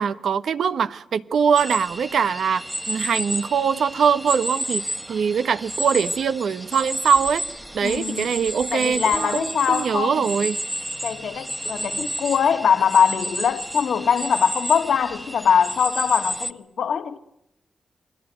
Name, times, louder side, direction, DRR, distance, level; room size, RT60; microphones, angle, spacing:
voice 1, 0.0-7.4 7.7-10.6, right 6 dB, 85° right, 1.3 m, -22 dB
sound 1, 1.6-16.5, right 1 dB, 10° right, 1.5 m, -31 dB
voice 2, 7.8-8.3 8.7-10.3 11.0-17.2, left 7 dB, 85° left, 2.1 m, -22 dB
28.5 x 22.0 x 9.1 m
wide cardioid pair, 95°, 0 cm